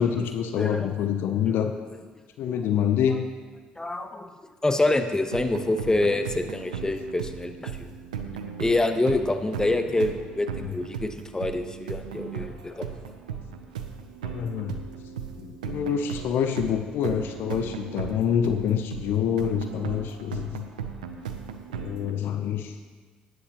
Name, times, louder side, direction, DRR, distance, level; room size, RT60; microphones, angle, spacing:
voice 1, 0.0-1.7 2.4-3.2 10.6-10.7 14.2-14.8 15.4-20.7 21.7-22.8, left 8 dB, 65° left, 7 dB, 0.6 m, -26 dB
voice 2, 0.6-0.9 1.4-1.6 2.5-2.6 3.8-7.9 8.6-13.0, left 2 dB, 15° left, 7 dB, 1.0 m, -26 dB
sound 1, 5.3-22.1, right 7 dB, 85° right, 0.6 m, -37 dB
13.5 x 9.8 x 3.0 m, 1.4 s
hypercardioid pair, 55°, 4 cm